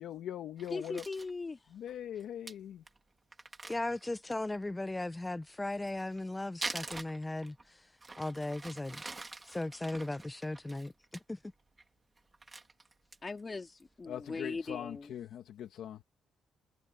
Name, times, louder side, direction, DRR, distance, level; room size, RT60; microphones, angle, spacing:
voice 1, 0.0-1.0 1.7-2.8 14.1-16.0, left 10 dB, 75° left, 2.2 m, -41 dB
Crumpling crinkling, 0.6-1.3 1.9-2.0 2.2-2.3 2.5-2.6 2.9-3.0 3.3-4.6 5.7-7.7 8.0-11.2 11.6-11.9 12.2-13.4 13.8-13.9 14.3-14.7, right 3 dB, 20° right, 3.1 m, -45 dB
voice 2, 0.7-1.7 13.2-15.1, left 4 dB, 30° left, 4.1 m, -39 dB
voice 3, 3.7-7.8 8.2-9.0 9.4-10.9 11.3-11.4, left 2 dB, 15° left, 0.8 m, -37 dB
cardioid pair, 90°, 0 cm